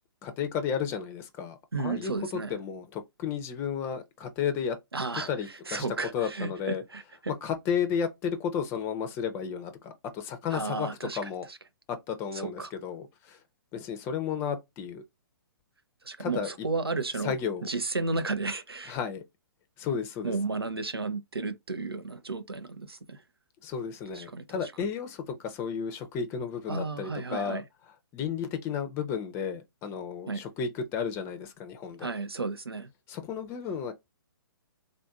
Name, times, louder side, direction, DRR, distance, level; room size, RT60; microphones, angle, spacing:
voice 1, 0.2-4.8 5.1-5.8 6.1-6.8 7.4-10.9 11.2-11.4 11.9-13.4 13.7-15.0 16.2-16.5 17.2-17.7 18.9-19.2 19.8-20.3 23.6-27.6 28.1-32.1 33.1-33.9, left 7 dB, 20° left, 0.5 m, -33 dB
voice 2, 1.7-2.6 4.9-7.3 10.5-11.6 12.3-12.7 16.0-17.3 17.6-19.0 20.2-23.2 24.1-24.7 26.7-27.6 30.3-30.4 32.0-32.9, right 3 dB, 85° right, 0.5 m, -33 dB
3.6 x 2.5 x 2.3 m
figure-of-eight pair, 125°, 12 cm